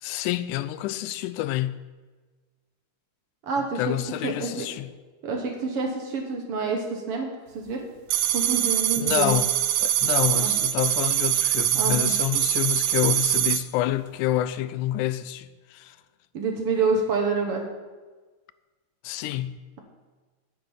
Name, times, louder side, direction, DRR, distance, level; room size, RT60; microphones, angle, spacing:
voice 1, 0.0-1.9 3.8-4.9 9.0-9.5 9.8-16.0 19.0-19.6, left 14 dB, 85° left, 2.1 m, -28 dB
voice 2, 3.5-4.0 4.2-4.7 5.2-7.3 7.5-7.8 8.3-9.4 10.3-10.5 11.7-12.1 16.3-17.6, right 4 dB, 60° right, 1.8 m, -27 dB
sound 1, 8.1-13.6, right 12 dB, 80° right, 2.0 m, -23 dB
9.6 x 9.1 x 5.8 m
omnidirectional pair, 3.5 m